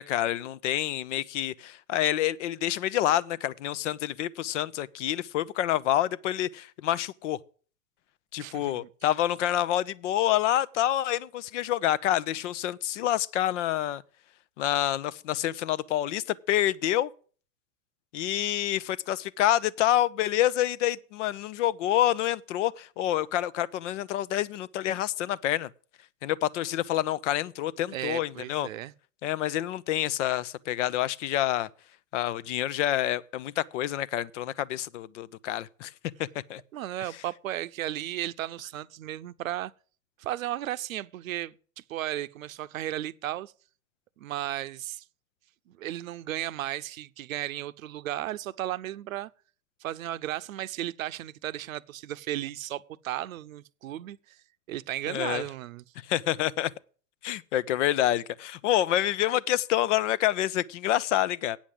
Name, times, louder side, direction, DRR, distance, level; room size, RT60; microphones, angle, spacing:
voice 1, 0.0-7.4 8.3-14.0 14.6-17.1 18.1-25.7 26.2-28.7 29.2-31.7 32.1-35.9 36.2-36.6 55.1-55.4 56.1-56.7 57.2-61.6, left 12 dB, 60° left, 0.7 m, -27 dB
voice 2, 8.4-8.9 27.9-28.9 36.7-39.7 40.2-41.6 41.9-43.5 44.2-45.0 45.7-49.3 49.8-54.4 54.7-55.8, right 13 dB, 70° right, 0.7 m, -35 dB
8.7 x 7.3 x 7.6 m
hypercardioid pair, 105°, 41 cm